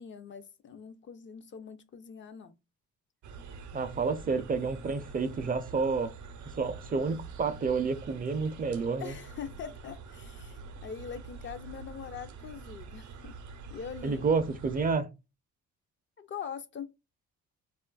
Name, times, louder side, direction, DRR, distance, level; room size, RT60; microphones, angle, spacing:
voice 1, 0.0-2.6 9.0-13.4 13.7-14.5 16.2-16.9, left 7 dB, 40° left, 0.4 m, -43 dB
sound 1, 3.2-14.9, right 4 dB, 75° right, 0.6 m, -46 dB
voice 2, 3.7-6.1 6.6-9.1 14.0-15.1, right 4 dB, 30° right, 0.4 m, -29 dB
3.0 x 2.4 x 2.2 m
cardioid pair, 90°, 30 cm